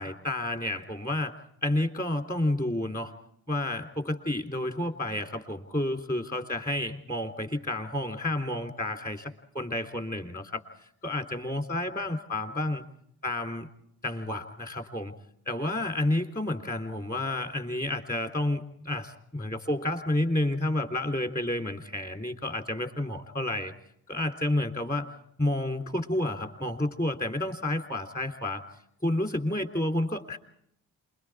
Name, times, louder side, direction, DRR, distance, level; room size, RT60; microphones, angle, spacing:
voice 1, 0.0-1.3 1.6-3.1 3.5-10.6 11.0-12.8 13.2-13.7 14.0-15.1 15.5-23.7 24.1-25.1 25.4-28.6 29.0-30.4, left 1 dB, 20° left, 4 dB, 3.4 m, -30 dB
28.0 x 22.0 x 4.8 m, 0.73 s
hypercardioid pair, 40°, 43 cm